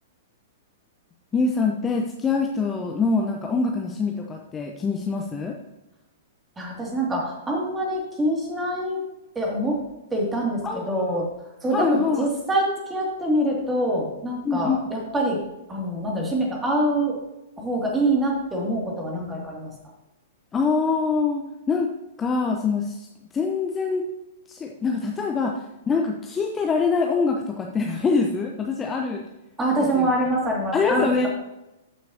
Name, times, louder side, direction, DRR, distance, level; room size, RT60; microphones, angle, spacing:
voice 1, 1.3-5.6 10.6-11.2 11.7-12.3 14.4-14.8 20.5-21.4 21.7-21.9 22.2-23.1 23.3-24.1 24.5-29.3 29.9-30.1 30.7-31.3, left 4 dB, 15° left, 1 dB, 0.8 m, -24 dB
voice 2, 6.6-9.0 9.3-9.8 10.1-11.3 11.6-12.6 12.9-15.4 15.7-17.1 17.6-19.7 29.6-31.3, right 1 dB, 15° right, -1 dB, 2.5 m, -25 dB
13.0 x 6.3 x 2.9 m, 0.97 s
figure-of-eight pair, 105°, 0 cm